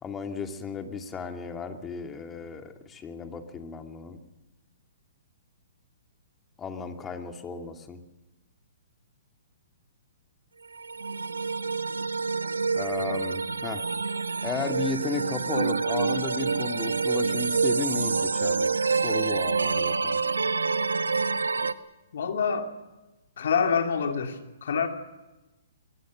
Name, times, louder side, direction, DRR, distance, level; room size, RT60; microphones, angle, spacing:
voice 1, 0.0-4.2 6.6-8.0 12.7-13.8 14.4-18.7 19.0-20.2, left 4 dB, 15° left, 5 dB, 2.5 m, -34 dB
sound 1, 10.7-21.7, right 4 dB, 90° right, 1.0 m, -27 dB
voice 2, 22.1-22.7 23.4-24.9, left 6 dB, 65° left, 5 dB, 2.7 m, -26 dB
24.0 x 22.5 x 6.4 m, 1.0 s
hypercardioid pair, 130°, 0 cm